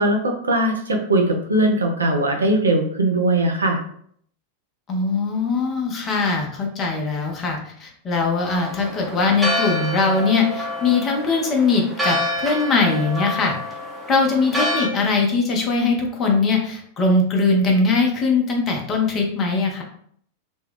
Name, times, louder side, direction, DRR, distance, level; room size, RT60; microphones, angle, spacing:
voice 1, 0.0-3.8, right 1 dB, 75° right, 2 dB, 0.6 m, -20 dB
voice 2, 4.9-13.5 14.1-19.8, left 3 dB, 30° left, 1 dB, 0.8 m, -21 dB
Church bell, 8.5-14.9, left 1 dB, 10° right, 0.8 m, -27 dB
3.0 x 2.3 x 3.6 m, 0.63 s
figure-of-eight pair, 90°, 0 cm